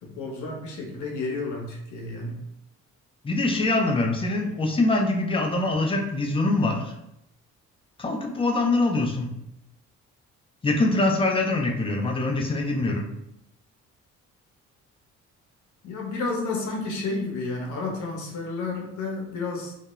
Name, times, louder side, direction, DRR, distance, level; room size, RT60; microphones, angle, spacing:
voice 1, 0.0-2.4 15.8-19.7, left 3 dB, 75° left, 0 dB, 0.8 m, -31 dB
voice 2, 3.2-6.9 8.0-9.3 10.6-13.0, left 2 dB, 20° left, 2 dB, 0.4 m, -24 dB
2.3 x 2.0 x 3.0 m, 0.81 s
cardioid pair, 90°, 30 cm